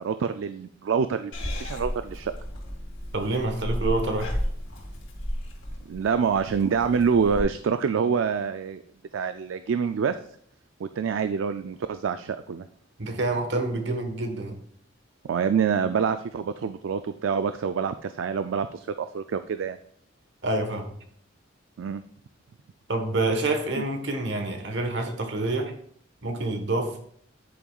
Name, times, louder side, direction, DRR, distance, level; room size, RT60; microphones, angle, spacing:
voice 1, 0.0-2.3 5.9-8.8 9.1-10.2 10.8-12.7 15.3-18.9 19.1-19.8 21.8-22.0 23.8-23.9, right 6 dB, 80° right, 0.4 m, -26 dB
Purr / Meow, 1.3-7.4, equal, 85° left, 2.3 m, -33 dB
voice 2, 3.1-4.3 13.0-14.6 20.4-20.9 22.9-25.7 26.2-27.0, right 2 dB, 60° right, 1.2 m, -27 dB
10.0 x 8.6 x 2.4 m
head